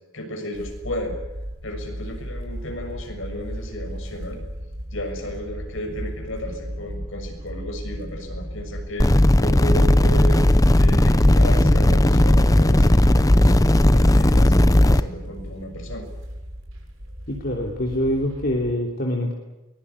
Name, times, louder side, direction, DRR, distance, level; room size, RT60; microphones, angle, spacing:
voice 1, 0.1-1.1 1.6-4.4 4.9-10.5 10.7-16.1, equal, 70° left, 4 dB, 6.6 m, -33 dB
sound 1, 0.5-18.7, equal, 70° right, 7.0 m, -36 dB
sound 2, 9.0-15.0, left 1 dB, 15° left, 0.8 m, -16 dB
voice 2, 17.3-19.3, left 1 dB, 45° left, 0 dB, 3.3 m, -25 dB
23.0 x 21.5 x 8.5 m, 1.1 s
head